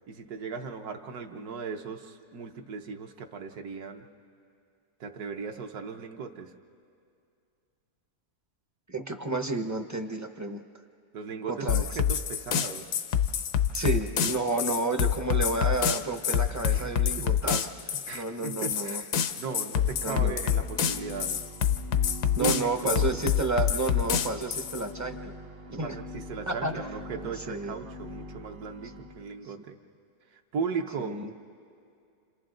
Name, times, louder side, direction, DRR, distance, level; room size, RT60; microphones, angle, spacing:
voice 1, 0.1-4.1 5.0-6.5 11.1-12.9 16.7-17.2 18.1-21.4 22.4-23.1 25.8-29.8 30.3-31.2, right 5 dB, 70° right, 4 dB, 1.5 m, -37 dB
voice 2, 8.9-10.6 11.5-11.8 13.7-19.0 20.0-20.3 22.4-25.3 25.7-26.0 26.5-26.7 27.4-27.8 31.0-31.3, right 2 dB, 20° right, 6 dB, 0.5 m, -31 dB
sound 1, 11.7-24.8, left 9 dB, 80° left, 1.3 m, -27 dB
sound 2, 19.6-29.3, left 1 dB, 50° right, 0.8 m, -44 dB
29.5 x 27.5 x 3.8 m, 2.4 s
omnidirectional pair, 1.7 m